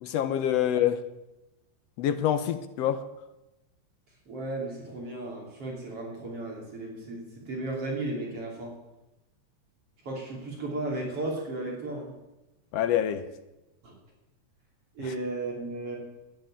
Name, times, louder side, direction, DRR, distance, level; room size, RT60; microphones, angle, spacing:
voice 1, 0.0-1.0 2.0-3.0 12.7-13.2, left 10 dB, 70° left, 11 dB, 1.7 m, -26 dB
voice 2, 4.3-8.7 10.0-12.1 13.8-13.9 15.0-16.0, right 2 dB, 50° right, -2 dB, 4.2 m, -34 dB
11.5 x 10.5 x 8.9 m, 0.98 s
omnidirectional pair, 3.4 m